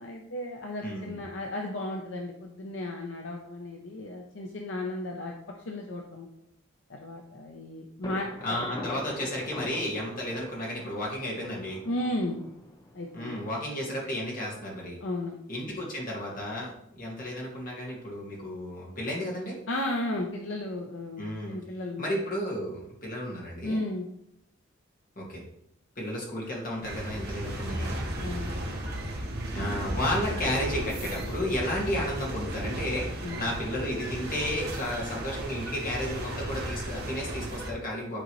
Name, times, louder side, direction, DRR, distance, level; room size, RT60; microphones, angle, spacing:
voice 1, 0.0-5.3 5.7-6.3 6.9-8.6 11.8-12.4 12.9-13.4 15.0-15.4 19.7-21.2 21.5-22.1 23.6-24.1 28.2-28.5 29.5-29.7 33.2-33.4, left 1 dB, 65° left, 1 dB, 0.7 m, -34 dB
voice 2, 0.8-1.2 8.4-11.8 13.1-15.0 15.5-19.6 21.2-21.6 22.0-23.8 25.2-25.4 26.0-28.0 29.5-38.2, left 1 dB, 40° left, -3 dB, 1.9 m, -33 dB
Thunder, 8.0-13.7, left 1 dB, 20° left, 0.6 m, -43 dB
sound 1, 26.8-37.7, right 1 dB, 50° right, 1.2 m, -34 dB
9.2 x 3.9 x 3.1 m, 0.75 s
head